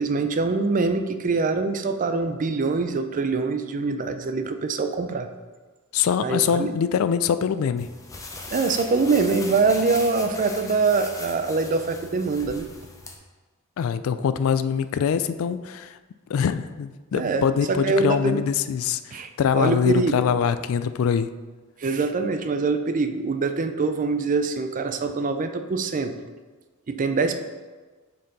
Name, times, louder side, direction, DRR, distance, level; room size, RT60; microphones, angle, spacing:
voice 1, 0.0-5.3 6.2-6.7 8.5-12.7 17.1-18.4 19.1-19.3 19.5-20.2 21.8-26.2 26.9-27.4, right 4 dB, 40° right, 8 dB, 0.4 m, -24 dB
voice 2, 5.9-7.9 13.8-16.0 16.3-21.3, left 7 dB, 65° left, 12 dB, 0.3 m, -23 dB
sound 1, 7.8-13.1, left 3 dB, 15° left, 0.6 m, -39 dB
6.4 x 4.4 x 4.1 m, 1.3 s
head